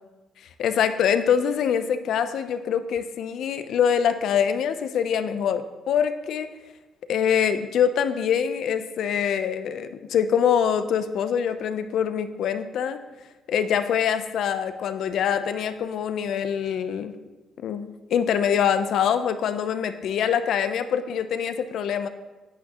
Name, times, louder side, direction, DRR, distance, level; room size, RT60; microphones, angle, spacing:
voice 1, 0.6-6.5 7.1-13.0 13.5-17.1 17.6-22.1, left 8 dB, 70° left, 10 dB, 0.6 m, -24 dB
11.0 x 8.9 x 3.0 m, 1.2 s
cardioid pair, 130°, 0 cm